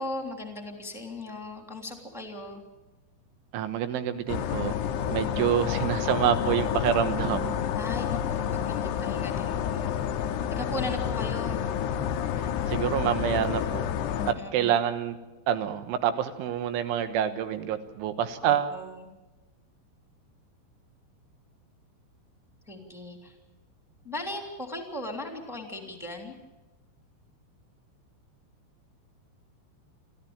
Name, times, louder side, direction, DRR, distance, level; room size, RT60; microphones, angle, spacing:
voice 1, 0.0-2.6 5.3-5.9 7.8-11.7 14.1-14.7 18.4-19.1 22.7-23.4 24.0-26.4, left 2 dB, ahead, 3 dB, 1.9 m, -38 dB
voice 2, 3.5-4.8 5.1-7.6 12.4-13.9 14.3-15.2 15.5-18.8, right 9 dB, 80° right, 9 dB, 3.7 m, -27 dB
sound 1, 4.3-14.3, left 9 dB, 75° left, 2.9 m, -29 dB
27.5 x 14.0 x 8.9 m, 1.1 s
omnidirectional pair, 5.6 m